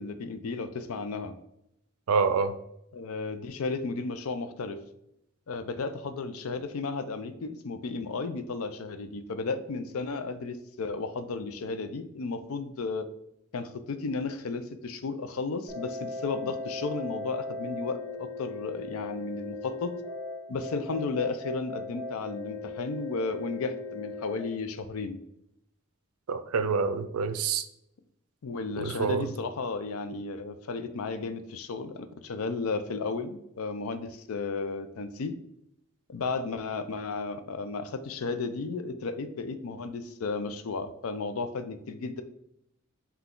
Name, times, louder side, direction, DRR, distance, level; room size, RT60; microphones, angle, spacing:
voice 1, 0.0-1.3 2.9-4.8 5.5-13.1 13.5-19.9 20.5-25.2 28.4-35.3 36.1-42.2, left 4 dB, 70° left, 10 dB, 0.5 m, -34 dB
voice 2, 2.1-2.5 26.3-27.6 28.8-29.3, right 5 dB, 80° right, 11 dB, 0.4 m, -27 dB
sound 1, 15.7-24.4, left 3 dB, 5° left, 1.5 m, -38 dB
5.7 x 2.3 x 3.7 m, 0.79 s
head